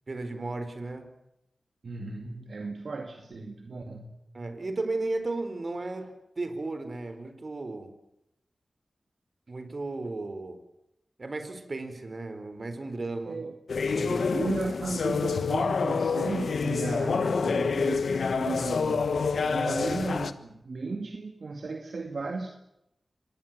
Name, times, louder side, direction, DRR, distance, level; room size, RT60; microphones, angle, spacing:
voice 1, 0.1-1.1 4.3-7.9 9.5-10.6 11.2-13.5 13.9-14.5, right 2 dB, 55° right, 9 dB, 4.4 m, -35 dB
voice 2, 1.8-4.2 13.3-13.6 14.3-19.2 19.5-22.5, right 3 dB, 70° right, 5 dB, 2.2 m, -35 dB
sound 1, 13.7-20.3, left 5 dB, 80° left, 1.3 m, -27 dB
25.5 x 20.0 x 7.6 m, 0.84 s
cardioid pair, 40°, 0 cm